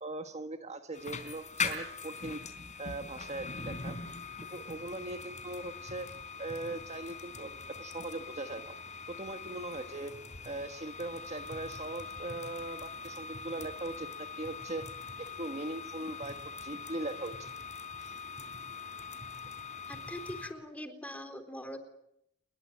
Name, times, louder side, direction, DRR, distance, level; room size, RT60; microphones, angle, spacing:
voice 1, 0.0-2.4 2.8-4.0 4.5-6.1 6.4-8.7 9.1-10.1 10.4-14.9 15.2-16.4 16.6-17.5 18.0-18.2, right 2 dB, 35° right, 6 dB, 1.6 m, -40 dB
sound 1, 0.9-20.5, left 4 dB, 40° left, 4.0 m, -42 dB
voice 2, 19.9-21.8, equal, 10° left, 8 dB, 3.8 m, -42 dB
29.5 x 22.5 x 7.6 m, 0.78 s
head